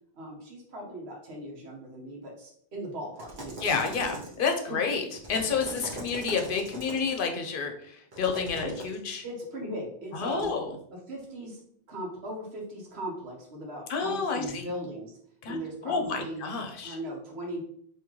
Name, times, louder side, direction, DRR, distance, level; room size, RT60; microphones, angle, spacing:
voice 1, 0.1-3.7 4.6-4.8 8.6-8.8 9.2-10.6 10.9-11.6 11.9-15.2 15.4-16.4 16.8-17.6, right 1 dB, 85° right, -2 dB, 1.2 m, -38 dB
sound 1, 3.2-4.5 5.1-7.2 8.1-9.0 10.3-10.5, right 1 dB, 50° right, 1.0 m, -41 dB
voice 2, 3.6-5.0 5.3-7.7 8.2-8.7 9.1-9.2 10.2-10.7 13.9-14.7 15.4-15.6 15.9-17.0, left 5 dB, 60° left, 4 dB, 0.8 m, -29 dB
3.7 x 2.8 x 3.0 m, 0.65 s
omnidirectional pair, 1.0 m